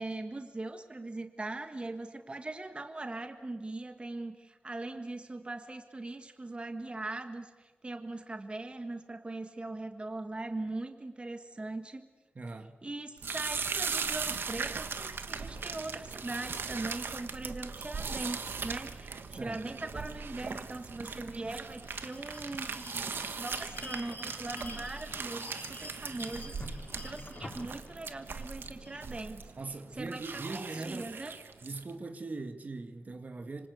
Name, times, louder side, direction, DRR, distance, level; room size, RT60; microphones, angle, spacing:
voice 1, 0.0-12.1 12.8-29.4 30.0-31.3, right 2 dB, 30° right, 1.6 m, -40 dB
voice 2, 12.4-12.8 19.3-19.6 29.6-31.2 31.6-33.7, right 3 dB, 45° right, 1.8 m, -40 dB
sound 1, 13.2-31.9, right 5 dB, 75° right, 1.4 m, -39 dB
Bell, 21.8-29.1, left 2 dB, 50° left, 4.2 m, -48 dB
26.0 x 25.5 x 8.1 m
wide cardioid pair, 95°, 4 cm